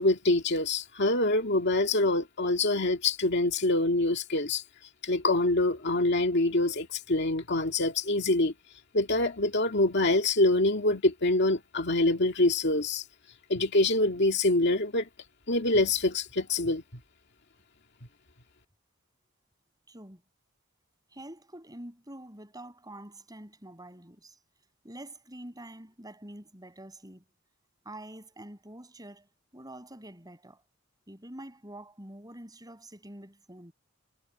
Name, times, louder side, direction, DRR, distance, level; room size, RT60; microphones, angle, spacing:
voice 1, 0.0-4.6 5.0-8.5 8.9-13.0 13.5-15.1 15.5-16.8, left 2 dB, 60° left, 2.1 m, -25 dB
voice 2, 19.9-20.2 21.1-24.4 24.8-27.2 27.9-29.3 29.5-30.6 31.1-33.7, right 1 dB, 20° right, 7.0 m, -46 dB
head